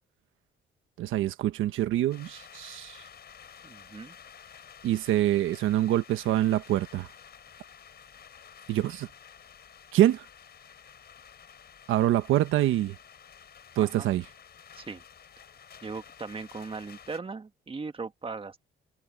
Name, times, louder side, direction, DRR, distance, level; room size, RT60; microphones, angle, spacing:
voice 1, 1.0-3.0 4.8-7.1 8.7-9.1 9.9-10.2 11.9-12.9 13.8-14.2, right 13 dB, 85° right, 1.2 m, -25 dB
sound 1, 2.1-17.2, left 8 dB, 55° left, 4.7 m, -51 dB
voice 2, 3.6-4.2 13.8-14.1 14.8-15.0 15.8-18.6, right 4 dB, 25° right, 1.7 m, -39 dB
cardioid pair, 90°, 20 cm